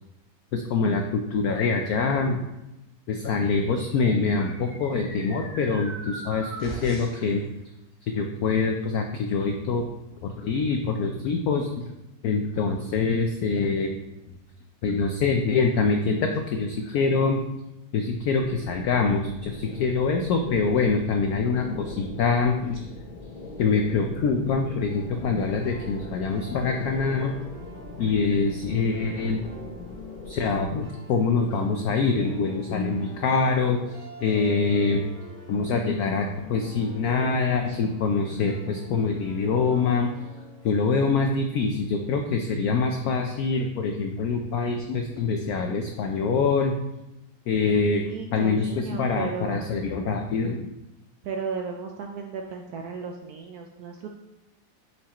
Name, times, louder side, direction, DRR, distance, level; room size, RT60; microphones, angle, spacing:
voice 1, 0.5-2.4 3.1-7.4 8.0-9.8 10.2-11.9 12.2-13.9 14.8-17.4 17.9-22.9 23.6-27.4 28.0-29.5 30.3-33.9 34.2-35.1 35.5-40.1 40.6-46.8 47.5-48.0 48.3-50.7, left 4 dB, 80° left, 4 dB, 0.8 m, -25 dB
sound 1, 3.7-7.3, right 1 dB, 50° right, 2.7 m, -40 dB
sound 2, 18.3-30.8, left 2 dB, 55° left, 0.5 m, -41 dB
sound 3, 24.9-41.8, left 2 dB, 30° left, 2.1 m, -45 dB
voice 2, 47.8-49.7 51.2-54.1, right 5 dB, 75° right, 2 dB, 0.8 m, -35 dB
7.1 x 4.8 x 2.9 m, 0.96 s
omnidirectional pair, 2.1 m